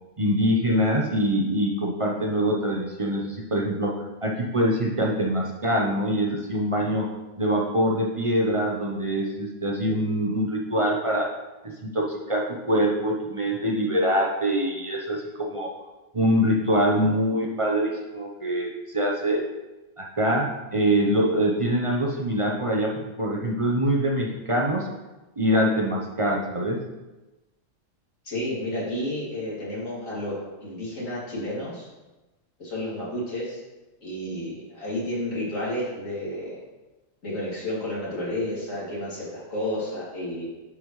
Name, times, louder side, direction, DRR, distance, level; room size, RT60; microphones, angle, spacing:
voice 1, 0.2-7.1 7.4-11.3 11.8-15.7 16.1-19.4 20.0-24.9 25.4-26.8, equal, 30° right, -1 dB, 0.7 m, -24 dB
voice 2, 28.2-31.9 32.6-33.6 34.0-36.6 37.2-40.5, left 1 dB, 80° left, -6 dB, 2.9 m, -31 dB
9.7 x 5.4 x 3.1 m, 1.1 s
omnidirectional pair, 1.4 m